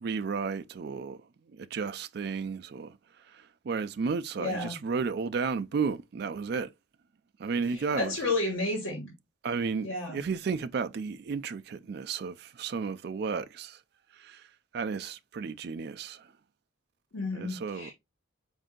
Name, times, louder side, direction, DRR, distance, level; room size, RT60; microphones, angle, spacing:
voice 1, 0.0-1.2 1.6-2.9 3.7-6.7 7.4-8.1 9.4-13.8 14.2-14.4 14.7-16.2 17.3-17.9, right 5 dB, 50° right, 0.3 m, -33 dB
voice 2, 4.4-4.8 7.7-9.1 9.8-10.2 17.1-17.9, left 2 dB, 85° left, 1.4 m, -32 dB
4.3 x 2.6 x 3.7 m
head